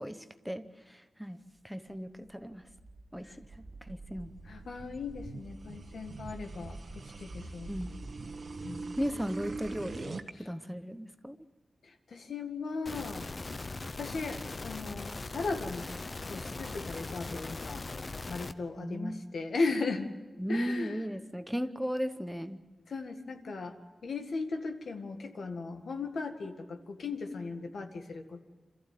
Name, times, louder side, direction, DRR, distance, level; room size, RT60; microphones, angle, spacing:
voice 1, 0.0-1.4 1.6-2.6 3.1-4.3 7.7-8.0 9.0-11.4 18.8-19.3 20.4-22.7, equal, ahead, 0.9 m, -36 dB
sound 1, 2.3-10.3, right 3 dB, 60° right, 1.2 m, -43 dB
voice 2, 4.5-7.7 8.6-8.9 12.1-13.7 14.0-15.8 16.3-17.8 18.3-20.1 20.5-21.0 22.9-23.7 24.0-28.4, left 3 dB, 80° left, 1.9 m, -37 dB
sound 2, 12.9-18.5, left 3 dB, 40° left, 0.8 m, -40 dB
27.5 x 14.5 x 9.2 m
wide cardioid pair, 115°, 0 cm